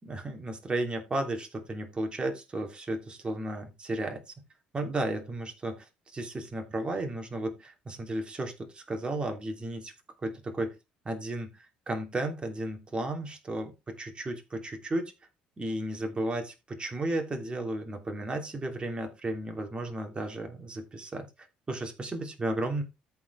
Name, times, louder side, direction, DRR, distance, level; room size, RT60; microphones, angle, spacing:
voice 1, 0.0-4.2 4.7-9.9 10.2-10.7 11.0-15.1 15.6-21.3 21.7-22.8, right 1 dB, 25° right, 4 dB, 3.0 m, -34 dB
14.0 x 4.8 x 3.4 m, 0.24 s
hypercardioid pair, 60°, 4 cm